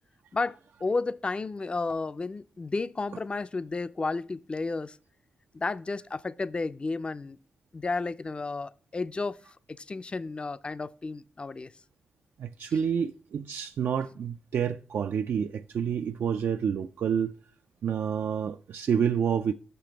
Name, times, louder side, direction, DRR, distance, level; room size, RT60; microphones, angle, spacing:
voice 1, 0.3-5.0 5.5-7.4 7.7-11.7, left 3 dB, 30° left, 0.4 m, -32 dB
voice 2, 12.4-17.3 17.8-19.5, right 7 dB, 80° right, 0.3 m, -28 dB
6.8 x 5.8 x 6.0 m
cardioid pair, 90°, 4 cm